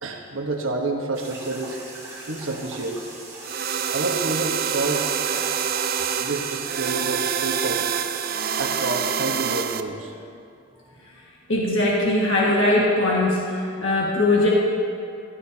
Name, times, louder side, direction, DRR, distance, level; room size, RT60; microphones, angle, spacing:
voice 1, 0.0-1.8 2.3-3.0 3.9-5.2 6.2-7.9 8.6-10.1, right 2 dB, 75° right, 2 dB, 1.2 m, -28 dB
sound 1, 1.1-9.0, right 2 dB, 15° right, 2.6 m, -40 dB
sound 2, 3.4-9.8, right 8 dB, 45° right, 0.4 m, -26 dB
voice 2, 11.5-14.5, left 2 dB, 60° left, -5 dB, 1.8 m, -20 dB
15.5 x 15.0 x 2.8 m, 2.6 s
head